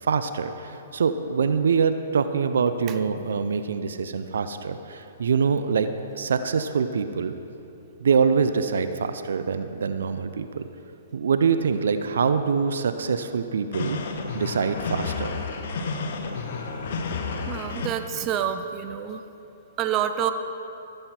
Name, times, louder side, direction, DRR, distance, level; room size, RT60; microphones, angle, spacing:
voice 1, 0.0-5.9 6.1-7.3 8.0-10.6 11.1-14.0 14.3-15.3, right 6 dB, 75° right, 10 dB, 0.5 m, -24 dB
sound 1, 13.7-17.9, left 4 dB, 60° left, 1.0 m, -31 dB
voice 2, 17.5-19.2 19.8-20.3, right 9 dB, 30° right, 9 dB, 0.6 m, -27 dB
15.0 x 7.8 x 4.4 m, 2.9 s
hypercardioid pair, 130°, 0 cm